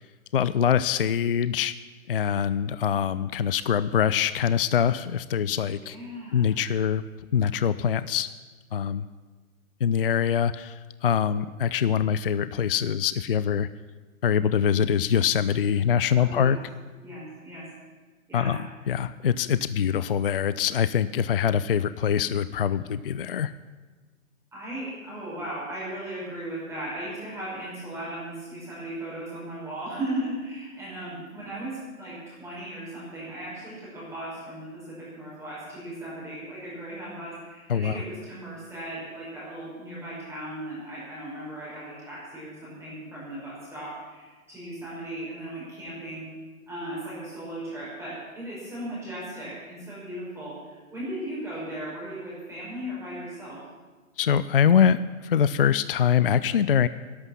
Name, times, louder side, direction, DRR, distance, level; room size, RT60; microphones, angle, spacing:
voice 1, 0.3-1.8 2.1-6.0 6.3-7.0 7.3-8.3 8.7-9.1 9.8-13.7 14.2-16.6 18.3-23.5 37.7-38.0 54.2-56.9, left 8 dB, 45° left, 15 dB, 0.4 m, -24 dB
voice 2, 5.8-6.5 16.2-16.6 17.0-17.6 18.3-18.5 24.5-46.3 46.7-53.6, right 1 dB, 5° right, -8 dB, 5.2 m, -37 dB
12.0 x 11.5 x 7.0 m, 1.3 s
figure-of-eight pair, 135°, 42 cm